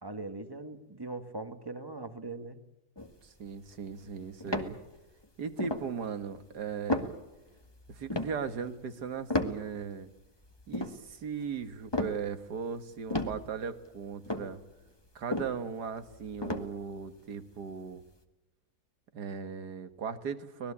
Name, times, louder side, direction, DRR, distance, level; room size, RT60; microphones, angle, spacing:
voice 1, 0.0-2.6, right 2 dB, 15° right, 9 dB, 1.4 m, -40 dB
sound 1, 3.0-5.2 5.5-5.9 6.4-6.5 6.7-10.1 10.4-12.8 13.1-17.1 17.5-17.6, left 1 dB, 15° left, 1.7 m, -35 dB
voice 2, 3.2-4.8 5.4-7.1 7.9-10.1 10.7-14.6 15.2-18.0 19.1-20.7, right 6 dB, 90° right, 10 dB, 2.1 m, -38 dB
25.0 x 19.5 x 8.5 m, 1.0 s
omnidirectional pair, 1.7 m